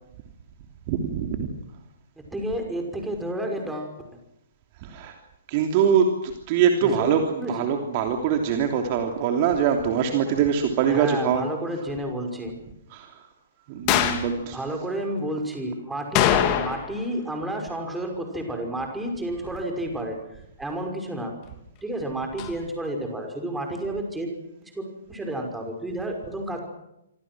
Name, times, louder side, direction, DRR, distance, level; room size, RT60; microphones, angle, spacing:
voice 1, 0.9-1.5 4.8-5.2 5.5-11.4 12.9-13.2 13.7-14.6, right 7 dB, 35° right, 4 dB, 3.1 m, -23 dB
voice 2, 2.3-4.0 6.8-7.1 7.4-7.6 10.9-12.5 14.1-20.3 20.6-21.3 21.8-24.4 24.7-26.6, right 1 dB, 5° right, 3 dB, 5.8 m, -31 dB
sound 1, 13.9-14.3 16.1-17.0 17.3-17.4 22.4-22.5, left 11 dB, 30° left, 2.8 m, -22 dB
27.0 x 25.5 x 6.3 m, 0.84 s
figure-of-eight pair, 125°, 0 cm